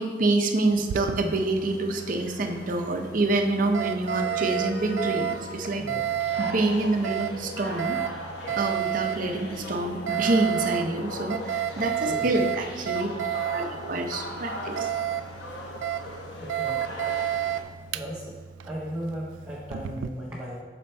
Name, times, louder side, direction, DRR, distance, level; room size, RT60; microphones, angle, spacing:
voice 1, 0.0-5.8 6.4-8.0 8.6-13.1 13.5-14.9, right 2 dB, 45° right, 4 dB, 0.6 m, -27 dB
Alarm, 0.7-20.1, right 10 dB, 85° right, 0.3 m, -32 dB
sound 1, 1.2-17.6, left 1 dB, 70° left, 0.9 m, -39 dB
voice 2, 11.7-12.3 16.4-17.0 17.9-20.6, equal, 10° right, -6 dB, 0.8 m, -37 dB
6.7 x 4.2 x 4.3 m, 1.4 s
head